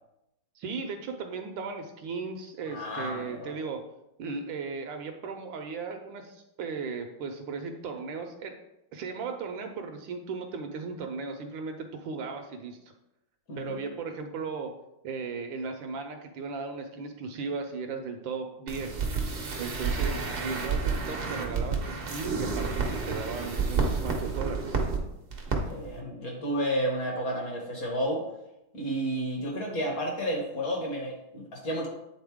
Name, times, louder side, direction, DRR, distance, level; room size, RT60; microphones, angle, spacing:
voice 1, 0.6-3.8 4.2-8.5 8.9-12.8 13.6-14.7 15.0-19.1 19.6-24.8, right 4 dB, 75° right, 5 dB, 1.3 m, -36 dB
voice 2, 2.7-3.5 13.5-13.8 25.7-28.2 28.7-31.9, equal, 50° left, 0 dB, 1.5 m, -31 dB
sound 1, 18.7-25.0 25.3-25.6 25.8-26.0, right 4 dB, 55° right, 0.6 m, -30 dB
8.8 x 4.0 x 3.5 m, 0.87 s
omnidirectional pair, 2.3 m